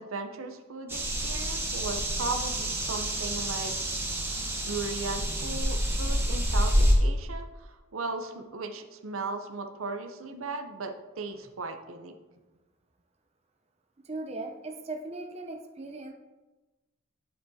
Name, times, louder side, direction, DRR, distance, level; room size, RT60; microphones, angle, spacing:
voice 1, 0.0-3.7 4.6-12.1, right 3 dB, 80° right, 6 dB, 0.7 m, -37 dB
sound 1, 0.9-6.9, equal, 10° right, 1.1 m, -28 dB
voice 2, 14.1-16.1, right 2 dB, 30° right, 3 dB, 0.6 m, -38 dB
8.7 x 7.5 x 2.7 m, 1.1 s
head